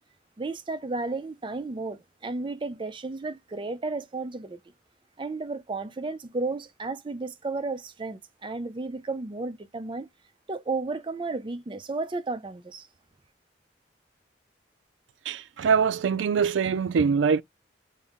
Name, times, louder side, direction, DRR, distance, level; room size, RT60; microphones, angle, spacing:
voice 1, 0.4-4.6 5.2-10.1 10.5-12.9, right 3 dB, 25° right, 0.5 m, -33 dB
voice 2, 15.3-17.4, right 6 dB, 90° right, 0.4 m, -23 dB
5.4 x 2.1 x 3.5 m
head